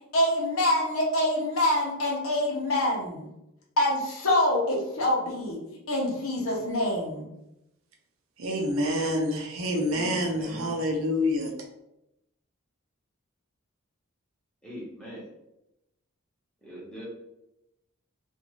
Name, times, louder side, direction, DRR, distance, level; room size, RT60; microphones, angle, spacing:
voice 1, 0.1-3.2 3.8-5.6 5.9-7.3, left 1 dB, 80° left, -2 dB, 0.9 m, -25 dB
voice 2, 8.4-11.5, left 1 dB, 75° right, 2 dB, 0.6 m, -27 dB
voice 3, 9.9-10.7 14.6-15.2 16.6-17.1, equal, 5° left, -6 dB, 1.0 m, -41 dB
2.6 x 2.5 x 3.0 m, 0.86 s
head